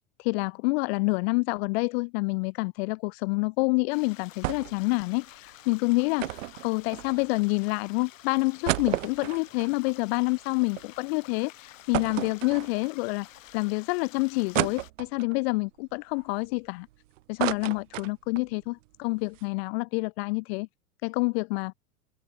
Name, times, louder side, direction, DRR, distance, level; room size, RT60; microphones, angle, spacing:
voice 1, 0.2-13.3 13.5-16.9 17.3-20.7 21.0-21.7, left 28 dB, 50° left, 0.6 m, -28 dB
sound 1, 3.9-14.9, left 14 dB, 70° left, 2.8 m, -50 dB
sound 2, 4.4-4.9 5.1-5.2 6.2-7.5 8.0-8.1 8.4-10.8 11.2-11.3 11.9-13.1 13.6-13.7 14.5-15.4 15.9-16.9 17.2-18.5 18.9-19.0 19.2-19.4, right 17 dB, 65° right, 1.0 m, -32 dB
hypercardioid pair, 95°, 40 cm